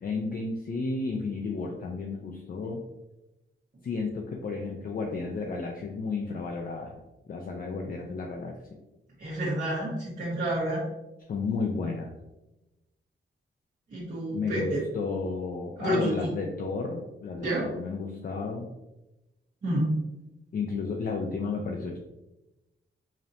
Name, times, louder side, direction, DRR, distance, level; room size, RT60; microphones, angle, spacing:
voice 1, 0.0-2.8 3.8-7.0 7.3-8.5 11.3-12.1 14.3-18.7 20.5-22.0, left 4 dB, 45° left, 1 dB, 0.4 m, -32 dB
voice 2, 9.2-10.8 13.9-14.8 15.8-16.1 17.4-17.6 19.6-19.9, right 1 dB, 45° right, -9 dB, 1.2 m, -29 dB
5.0 x 2.7 x 2.7 m, 0.97 s
wide cardioid pair, 175°, 20 cm